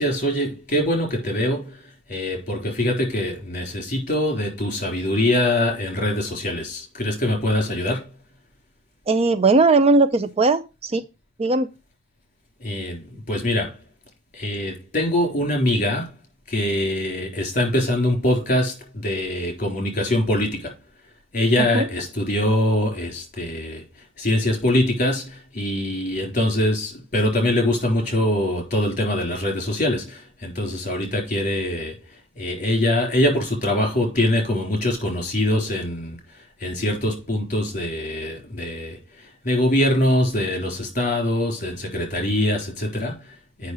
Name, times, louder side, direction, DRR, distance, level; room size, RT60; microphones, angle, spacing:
voice 1, 0.0-8.2 12.6-13.8 14.3-16.1 16.5-20.7 21.3-43.7, left 1 dB, 40° left, 3.6 m, -23 dB
voice 2, 9.1-11.0 11.4-11.7 21.7-21.8, right 3 dB, 30° right, 0.5 m, -18 dB
8.0 x 5.7 x 4.8 m
head